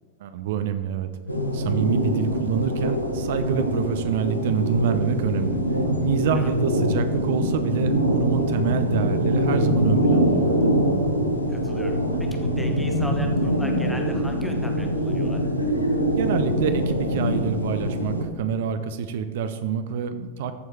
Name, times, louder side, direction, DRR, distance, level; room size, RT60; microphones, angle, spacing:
voice 1, 0.2-1.1 1.5-5.6 6.0-10.6 16.2-20.5, right 7 dB, 55° right, 9 dB, 0.4 m, -26 dB
sound 1, 1.3-18.2, equal, 85° left, 0.9 m, -24 dB
voice 2, 11.5-15.4, equal, 5° left, 4 dB, 1.0 m, -38 dB
13.5 x 4.6 x 3.3 m, 1.3 s
figure-of-eight pair, 90°, 0 cm